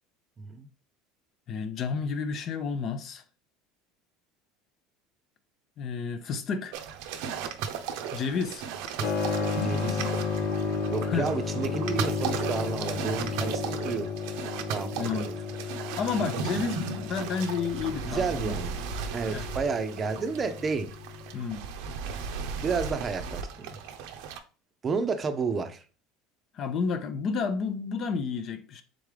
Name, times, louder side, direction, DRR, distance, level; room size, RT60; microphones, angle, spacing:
voice 1, 0.4-0.7 9.0-9.1 9.6-10.0 10.9-14.1 14.7-15.4 18.1-18.8 19.1-20.9 22.6-23.8 24.8-25.8, right 5 dB, 30° right, 0.5 m, -31 dB
voice 2, 1.5-3.2 5.8-6.8 8.1-8.7 11.0-11.3 15.0-15.3 16.0-18.5 19.3-19.4 21.3-21.6 26.5-28.8, left 5 dB, 45° left, 0.5 m, -31 dB
sound 1, 6.7-24.4, right 6 dB, 75° right, 0.5 m, -36 dB
Keyboard (musical), 9.0-21.4, left 5 dB, 75° left, 0.8 m, -33 dB
3.7 x 3.5 x 3.2 m
supercardioid pair, 115°, 0 cm